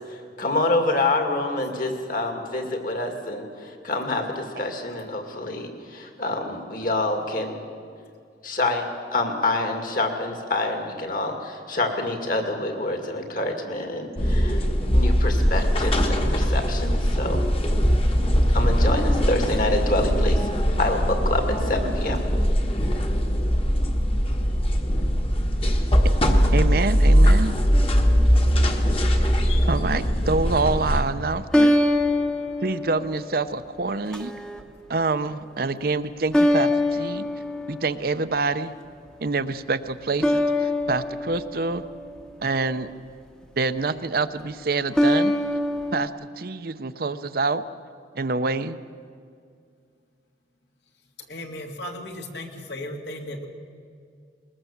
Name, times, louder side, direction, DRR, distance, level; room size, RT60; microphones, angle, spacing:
voice 1, 0.1-7.6 8.4-8.9 9.1-14.6 14.9-17.4 18.5-22.2, left 2 dB, 50° left, 4 dB, 2.4 m, -27 dB
sound 1, 14.2-31.0, equal, 30° left, 1.4 m, -21 dB
voice 2, 26.5-27.6 29.7-31.8 32.6-34.3 34.9-37.2 37.7-38.7 39.2-41.8 42.4-42.9 43.6-45.3 45.9-47.6 48.1-48.8, right 3 dB, 55° right, 11 dB, 0.7 m, -26 dB
sound 2, 27.7-28.6 31.5-33.6 34.1-34.6 36.3-38.3 40.2-42.7 44.9-46.1, left 1 dB, 5° left, 0.9 m, -24 dB
voice 3, 51.3-53.5, left 1 dB, 70° left, 2 dB, 2.3 m, -35 dB
20.5 x 20.5 x 7.3 m, 2.2 s
head